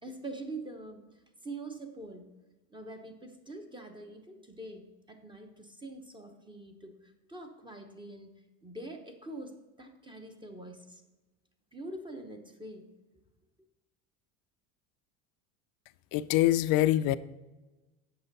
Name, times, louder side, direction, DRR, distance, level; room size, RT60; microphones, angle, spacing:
voice 1, 0.0-2.3 2.7-8.3 8.6-11.0 11.7-12.8, right 2 dB, 10° right, 4 dB, 0.9 m, -44 dB
voice 2, 16.1-17.2, left 14 dB, 55° left, 15 dB, 0.5 m, -24 dB
7.8 x 6.1 x 4.0 m, 1.1 s
supercardioid pair, 110°, 41 cm